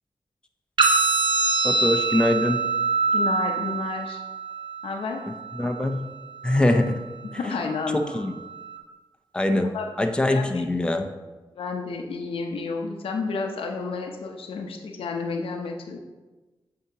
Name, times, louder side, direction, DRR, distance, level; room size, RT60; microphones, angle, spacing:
sound 1, 0.8-8.8, right 4 dB, 60° right, 0.9 m, -26 dB
voice 1, 1.6-2.6 5.6-6.1 6.4-7.0 7.9-8.3 9.3-9.7 10.0-11.1, left 1 dB, 10° left, 6 dB, 0.5 m, -23 dB
voice 2, 3.1-4.2 4.8-5.2 7.2-8.2 9.7-9.9 10.3-10.6 11.5-16.0, left 4 dB, 90° left, 3 dB, 0.7 m, -31 dB
8.1 x 2.9 x 4.8 m, 1.2 s
cardioid pair, 70°, 9 cm